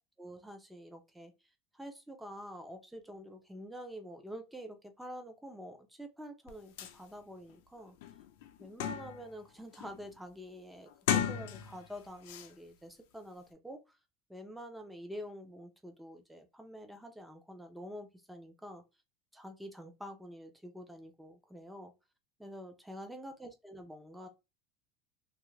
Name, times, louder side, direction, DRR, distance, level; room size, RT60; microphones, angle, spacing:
voice 1, 0.2-1.3 1.7-8.0 8.6-13.8 14.3-18.8 19.3-21.9 22.4-24.3, equal, 5° right, 0.5 m, -47 dB
sound 1, 6.5-6.6 6.8-7.0 7.5-7.6 8.0-9.3 9.7-10.1 10.9-11.9 12.2-12.5, left 9 dB, 80° left, 0.5 m, -35 dB
2.6 x 2.4 x 3.1 m
supercardioid pair, 155°, 0 cm